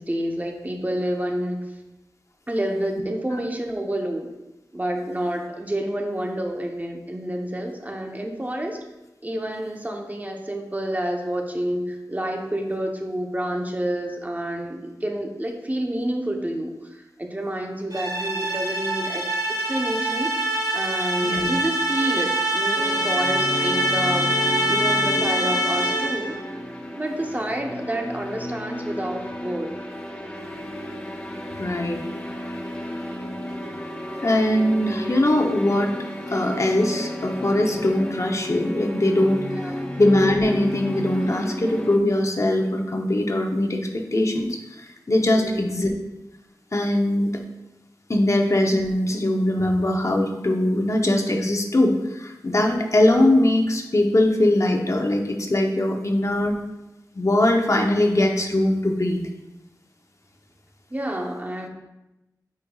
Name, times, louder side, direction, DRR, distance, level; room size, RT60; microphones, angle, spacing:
voice 1, 0.0-1.6 2.5-4.3 4.7-8.8 9.2-20.3 20.7-24.3 24.7-26.4 26.9-29.7 39.6-39.9 45.3-45.7 60.9-61.7, right 1 dB, 25° right, 2 dB, 0.9 m, -29 dB
sound 1, 17.9-26.3, right 1 dB, 60° right, 1.5 m, -24 dB
sound 2, 22.8-42.0, equal, 15° left, 0.8 m, -32 dB
voice 2, 31.5-32.0 34.2-35.9 36.3-39.5 40.0-45.9 46.7-47.3 48.1-56.6 57.1-59.2, left 1 dB, 45° left, 2 dB, 0.9 m, -21 dB
8.8 x 5.3 x 2.4 m, 0.98 s
wide cardioid pair, 55°, 7 cm